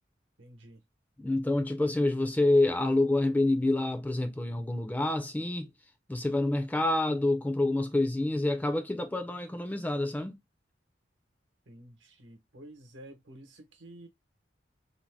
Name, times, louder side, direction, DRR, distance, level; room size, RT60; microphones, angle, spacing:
voice 1, 0.4-0.8 11.7-14.1, right 1 dB, 85° right, 0.9 m, -50 dB
voice 2, 1.2-5.7 6.1-10.4, left 2 dB, 10° left, 0.4 m, -27 dB
2.6 x 2.1 x 3.2 m
head